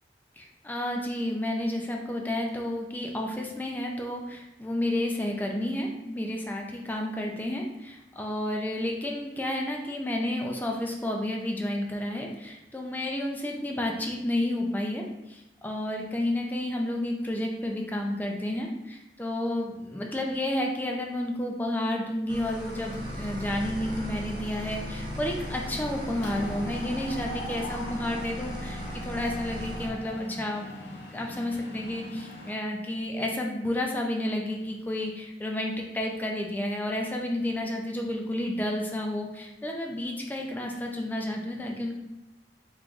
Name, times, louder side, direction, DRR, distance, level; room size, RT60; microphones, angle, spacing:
voice 1, 0.4-30.8 31.1-41.9, left 1 dB, 10° left, 0 dB, 0.4 m, -31 dB
sound 1, 22.3-29.9, equal, 30° right, 0.7 m, -37 dB
Mechanisms, 22.9-23.5 23.9-24.1 24.3-32.5, left 1 dB, 70° left, 0.7 m, -42 dB
3.6 x 3.3 x 2.5 m, 0.94 s
head